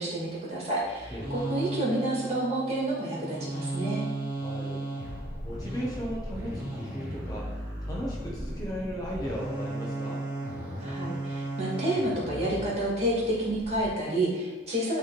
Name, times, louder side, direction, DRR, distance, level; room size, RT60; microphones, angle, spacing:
voice 1, 0.0-4.0 10.8-15.0, right 1 dB, 35° right, -5 dB, 2.5 m, -29 dB
sound 1, 0.8-13.9, right 1 dB, 15° right, 2.7 m, -36 dB
voice 2, 4.4-4.8 5.4-7.5 7.8-10.2, equal, 20° left, -4 dB, 1.2 m, -36 dB
11.0 x 3.6 x 4.2 m, 1.2 s
head